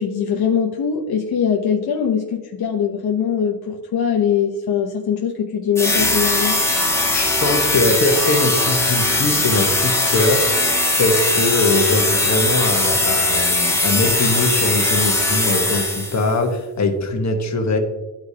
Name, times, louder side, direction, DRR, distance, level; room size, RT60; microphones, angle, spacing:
voice 1, 0.0-6.6, left 7 dB, 70° left, 1 dB, 0.8 m, -21 dB
sound 1, 5.8-16.3, left 2 dB, 5° left, 1.2 m, -19 dB
voice 2, 7.1-10.5 11.0-17.8, left 2 dB, 45° left, 3 dB, 1.3 m, -21 dB
13.0 x 4.8 x 2.8 m, 1.1 s
cardioid pair, 90°, 38 cm